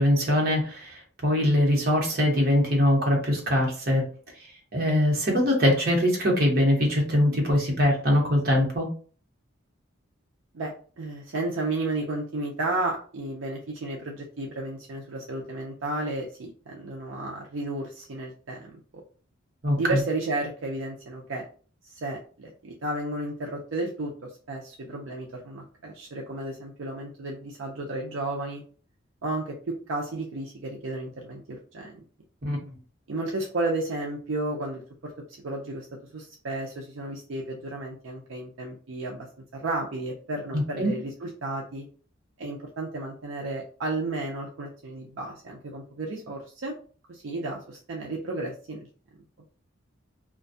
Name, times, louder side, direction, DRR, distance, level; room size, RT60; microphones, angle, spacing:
voice 1, 0.0-4.1 4.7-8.9 19.6-20.0 32.4-32.6 40.5-40.9, equal, 45° right, -1 dB, 0.9 m, -22 dB
voice 2, 10.5-18.8 19.8-21.5 21.8-28.6 29.2-31.9 33.1-35.1 35.4-35.9 36.1-39.3 39.5-41.9 42.4-46.8 47.1-48.9, right 2 dB, 75° right, -2 dB, 0.5 m, -33 dB
2.5 x 2.2 x 2.6 m, 0.41 s
head